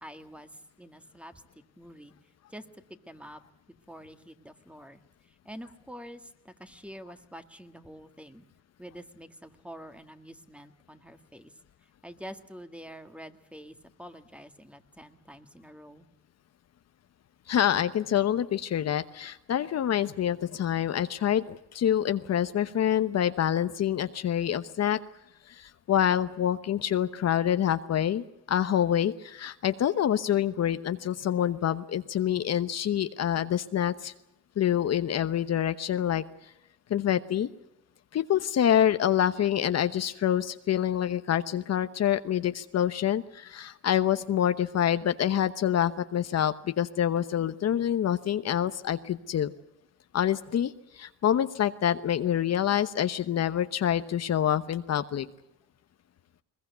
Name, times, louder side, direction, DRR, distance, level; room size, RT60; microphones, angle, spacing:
voice 1, 0.0-1.4 1.8-2.1 2.5-3.4 3.9-8.4 8.8-16.1, equal, 5° right, 8 dB, 1.8 m, -47 dB
voice 2, 17.5-25.0 25.5-34.1 34.6-36.5 36.9-37.5 38.1-49.5 50.1-55.3, left 10 dB, 60° left, 11 dB, 1.0 m, -26 dB
21.5 x 20.5 x 8.1 m, 0.82 s
cardioid pair, 90°, 30 cm